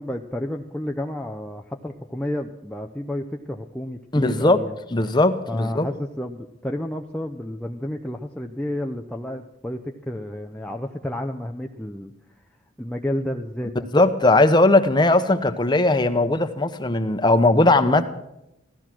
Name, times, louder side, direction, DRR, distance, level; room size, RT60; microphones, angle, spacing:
voice 1, 0.0-4.8 5.5-12.1 12.8-13.9, left 1 dB, 5° left, 2 dB, 0.6 m, -31 dB
voice 2, 4.1-4.6 4.9-5.9 13.9-18.1, left 2 dB, 25° left, 8 dB, 0.9 m, -18 dB
15.5 x 13.5 x 6.1 m, 0.86 s
head